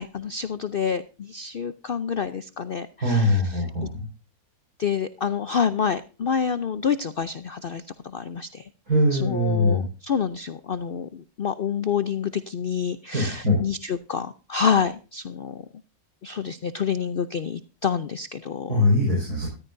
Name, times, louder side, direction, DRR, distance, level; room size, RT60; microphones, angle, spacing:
voice 1, 0.0-3.4 4.8-8.6 9.1-15.6 16.2-18.9, left 7 dB, 55° left, 13 dB, 0.6 m, -28 dB
voice 2, 3.0-4.0 8.9-9.9 13.1-13.6 18.7-19.5, left 1 dB, 85° right, 0 dB, 5.5 m, -22 dB
14.0 x 14.0 x 2.6 m, 0.34 s
omnidirectional pair, 1.6 m